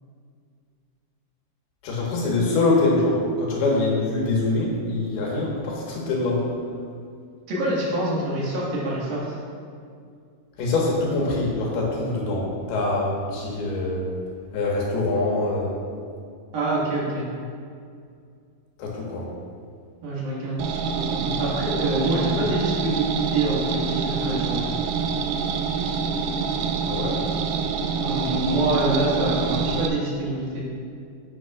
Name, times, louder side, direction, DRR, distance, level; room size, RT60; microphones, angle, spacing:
voice 1, 1.8-6.4 10.6-14.0 14.5-15.8 18.8-19.2 26.9-27.2, left 2 dB, 90° left, -3 dB, 3.5 m, -24 dB
voice 2, 7.5-9.4 16.5-17.3 20.0-24.6 28.0-30.6, right 1 dB, 70° right, -6 dB, 3.6 m, -26 dB
sound 1, 20.6-29.9, right 6 dB, 85° right, 1.9 m, -26 dB
10.0 x 9.5 x 2.5 m, 2.3 s
omnidirectional pair, 4.4 m